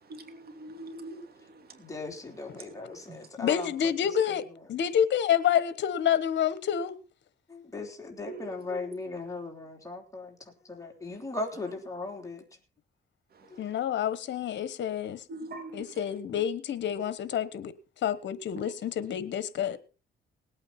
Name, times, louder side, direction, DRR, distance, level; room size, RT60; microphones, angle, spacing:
voice 1, 0.1-1.6 3.1-3.2 8.3-8.8 15.3-15.8, right 2 dB, 50° right, 2.8 m, -42 dB
voice 2, 1.8-3.7 4.3-4.4 7.5-10.4 10.7-12.4, left 3 dB, 15° left, 3.7 m, -38 dB
voice 3, 3.4-4.4 4.7-7.0 13.5-15.2 15.7-17.7 18.0-19.8, left 9 dB, 65° left, 1.2 m, -28 dB
19.5 x 8.8 x 4.3 m
cardioid pair, 90°, 20 cm